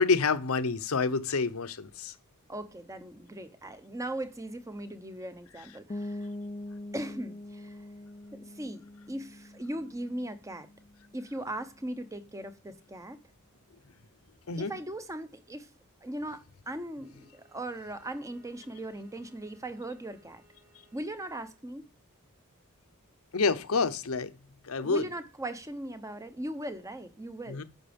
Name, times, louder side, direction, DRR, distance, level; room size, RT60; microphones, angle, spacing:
voice 1, 0.0-2.1 14.5-14.7 23.3-24.3 24.6-25.1 27.5-27.6, left 4 dB, 85° left, 0.8 m, -28 dB
voice 2, 2.5-6.3 6.9-7.8 8.3-10.7 11.1-13.2 14.6-15.7 16.0-20.4 20.9-21.9 24.8-27.6, right 1 dB, 15° right, 0.8 m, -39 dB
sound 1, 5.9-11.5, left 1 dB, 25° left, 0.4 m, -43 dB
Bowed string instrument, 16.7-21.7, right 1 dB, 60° right, 4.8 m, -64 dB
10.0 x 6.0 x 5.2 m
head